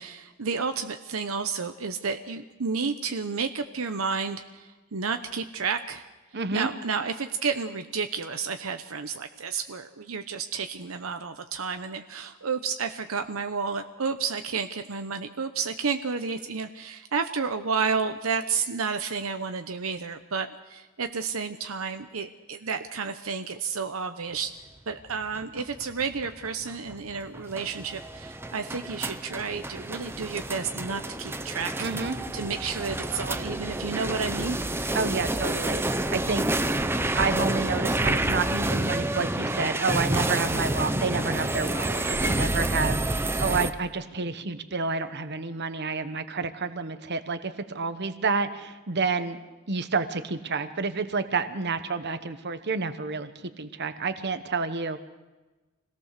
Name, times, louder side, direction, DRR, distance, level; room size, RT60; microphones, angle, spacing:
voice 1, 0.0-6.0 6.5-24.5 24.9-31.9 32.3-34.6, right 5 dB, 75° right, 8 dB, 0.9 m, -31 dB
voice 2, 6.3-6.7 31.8-32.2 34.9-36.5 37.1-49.4 49.7-55.0, right 4 dB, 55° right, 11 dB, 1.2 m, -29 dB
sound 1, 25.1-43.7, right 1 dB, 10° right, 0.7 m, -29 dB
26.0 x 17.5 x 6.7 m, 1.2 s
head